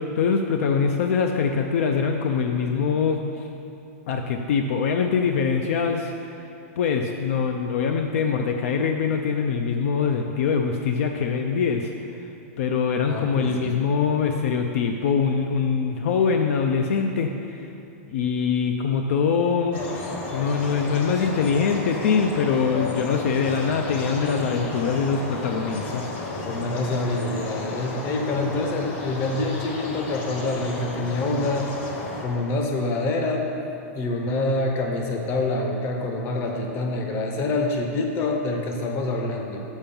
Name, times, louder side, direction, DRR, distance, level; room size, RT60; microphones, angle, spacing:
voice 1, 0.0-3.2 4.1-6.1 6.8-11.9 12.6-17.3 18.1-19.8 20.3-26.1, left 6 dB, 60° left, 4 dB, 0.4 m, -23 dB
voice 2, 13.1-13.8 26.5-31.7 32.2-33.5 33.9-39.6, left 2 dB, 30° left, 2 dB, 0.7 m, -26 dB
sound 1, 19.7-32.2, left 2 dB, 45° left, 1.1 m, -33 dB
7.2 x 4.6 x 5.3 m, 2.8 s
supercardioid pair, 160°, 8 cm